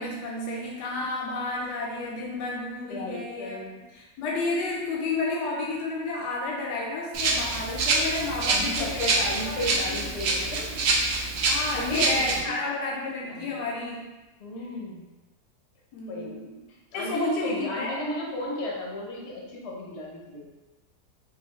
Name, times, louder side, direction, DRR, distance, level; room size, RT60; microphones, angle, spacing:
voice 1, 0.0-3.6 3.9-9.2 9.4-10.1 11.5-14.1 15.9-16.6 16.9-18.0, left 3 dB, 90° left, -2 dB, 1.2 m, -31 dB
voice 2, 2.8-3.7 8.4-10.8 11.4-12.6 13.3-13.6 14.4-15.1 16.1-16.4 16.9-20.5, left 1 dB, 55° left, -2 dB, 0.8 m, -34 dB
Rattle (instrument), 7.1-12.4, right 3 dB, 80° right, 0.5 m, -26 dB
3.7 x 2.7 x 3.0 m, 1.1 s
omnidirectional pair, 1.7 m